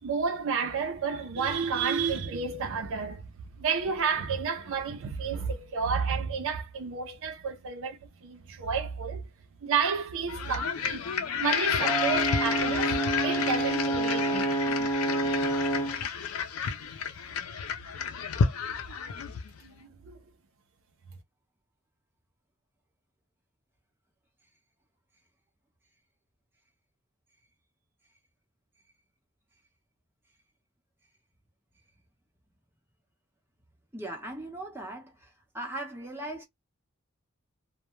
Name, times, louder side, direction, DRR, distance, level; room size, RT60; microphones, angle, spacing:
voice 1, 0.0-9.3 9.6-11.1 11.4-14.6 15.2-15.5 19.6-20.2, right 5 dB, 65° right, 0.5 m, -31 dB
sound 1, 10.3-19.6, left 6 dB, 80° left, 0.5 m, -31 dB
Brass instrument, 11.8-16.0, right 2 dB, 15° left, 0.6 m, -28 dB
voice 2, 33.9-35.3 35.5-36.4, right 1 dB, 10° right, 0.9 m, -38 dB
2.2 x 2.1 x 3.0 m
head